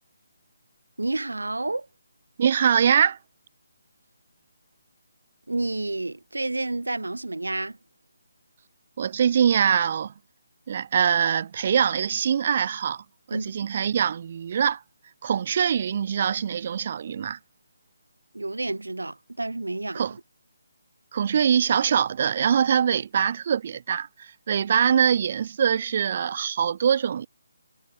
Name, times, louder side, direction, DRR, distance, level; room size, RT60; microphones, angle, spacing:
voice 1, 1.0-1.9 5.5-7.8 13.3-13.7 18.3-20.1, right 2 dB, 75° right, 5.5 m, -30 dB
voice 2, 2.4-3.2 9.0-10.1 10.7-14.8 15.2-17.4 19.9-20.2 21.1-27.3, right 8 dB, 40° right, 0.8 m, -23 dB
figure-of-eight pair, 145°, 0 cm